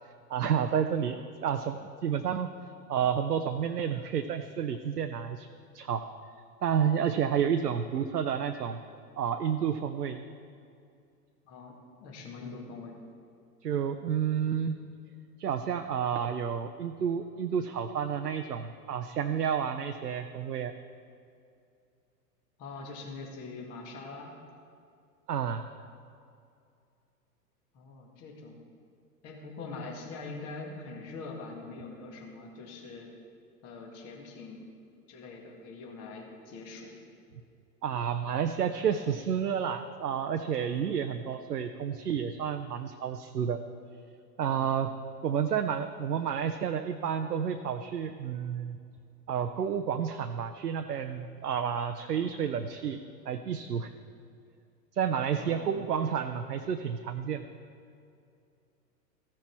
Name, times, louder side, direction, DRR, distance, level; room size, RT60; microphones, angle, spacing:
voice 1, 0.3-2.5 2.9-5.5 5.7-6.0 6.6-8.8 9.2-10.2 13.6-14.8 15.4-20.7 25.3-25.7 37.8-43.6 44.4-44.9 45.2-48.8 49.3-53.0 53.3-53.9 54.9-57.5, right 8 dB, 75° right, 7 dB, 0.6 m, -30 dB
voice 2, 11.4-13.0 22.6-24.3 27.7-28.6 29.2-33.1 33.6-34.6 35.1-37.0 44.5-44.7 55.3-55.8, left 3 dB, 30° left, 0 dB, 1.8 m, -43 dB
15.0 x 6.1 x 4.5 m, 2.4 s
figure-of-eight pair, 100°, 48 cm